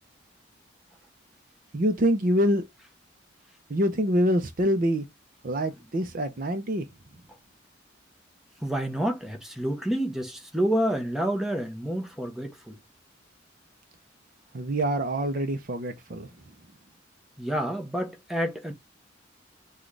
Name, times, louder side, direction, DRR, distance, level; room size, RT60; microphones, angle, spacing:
voice 1, 1.7-2.6 3.7-5.0 5.4-6.8 14.5-16.3, equal, 45° right, 0.6 m, -25 dB
voice 2, 8.6-12.8 17.4-18.7, right 1 dB, ahead, 0.9 m, -28 dB
6.0 x 2.4 x 3.2 m
head